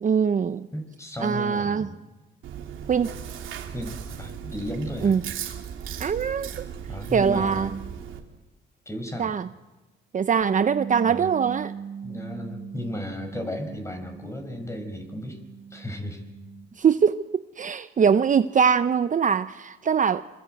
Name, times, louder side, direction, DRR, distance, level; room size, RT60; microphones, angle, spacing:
voice 1, 0.0-0.7 1.2-1.9 2.9-3.1 5.0-5.3 6.0-6.5 7.1-7.8 9.2-9.5 10.1-11.7 16.8-20.2, right 7 dB, 40° right, 0.8 m, -22 dB
voice 2, 0.7-2.0 3.7-5.2 6.9-7.7 8.9-9.3 11.1-11.3 12.0-15.4 15.7-16.2, left 1 dB, 15° left, 5.6 m, -34 dB
Chewing mastication, 2.4-8.2, right 8 dB, 80° right, 2.9 m, -37 dB
Bass guitar, 10.4-16.7, right 7 dB, 65° right, 4.6 m, -39 dB
27.0 x 23.0 x 7.9 m
cardioid pair, 90°, 20 cm